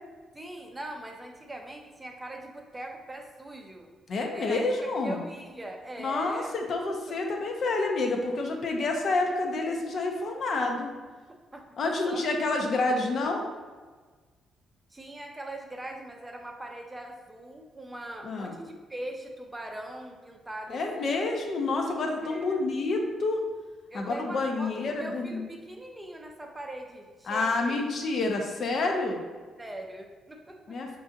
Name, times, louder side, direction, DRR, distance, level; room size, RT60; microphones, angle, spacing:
voice 1, 0.3-3.9 4.3-4.6 5.0-6.5 7.1-7.2 11.5-12.2 12.6-13.0 14.9-21.1 22.3-22.6 23.9-27.8 29.6-30.8, right 1 dB, 15° right, 2 dB, 0.5 m, -41 dB
voice 2, 4.1-5.2 6.0-10.9 11.8-13.4 18.2-18.6 20.7-23.4 23.9-25.4 27.3-29.2 30.7-31.0, left 3 dB, 55° left, 2 dB, 0.5 m, -28 dB
4.7 x 2.5 x 2.7 m, 1.4 s
cardioid pair, 90°, 0 cm